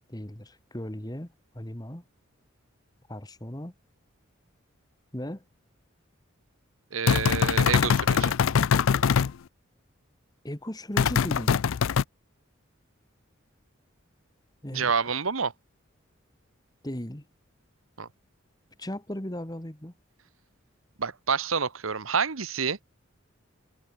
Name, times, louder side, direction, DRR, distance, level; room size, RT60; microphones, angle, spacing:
voice 1, 0.1-2.0 3.1-3.7 5.1-5.4 10.4-11.5 14.6-14.9 16.8-17.2 18.8-19.9, left 1 dB, 20° left, 1.8 m, -36 dB
voice 2, 6.9-8.3 14.7-15.5 18.0-18.1 21.0-22.8, right 6 dB, 85° right, 1.3 m, -28 dB
sound 1, 7.1-9.3 11.0-12.0, left 7 dB, 80° left, 0.4 m, -22 dB
head